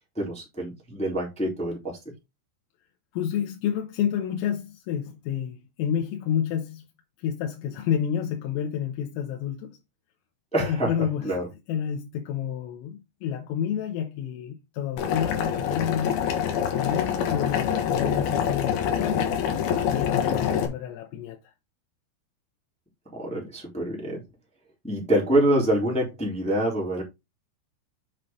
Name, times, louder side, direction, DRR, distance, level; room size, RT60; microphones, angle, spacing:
voice 1, 0.1-2.0 10.5-10.9 11.2-11.5 20.3-20.4 23.1-24.2 24.8-27.0, right 1 dB, ahead, 2.5 m, -26 dB
voice 2, 3.1-6.9 7.2-9.8 10.6-11.3 11.7-16.3 16.7-19.3 19.9-21.5, left 9 dB, 85° left, 3.6 m, -29 dB
Boiling, 15.0-20.7, left 8 dB, 60° left, 3.0 m, -26 dB
8.0 x 6.2 x 3.7 m
omnidirectional pair, 5.8 m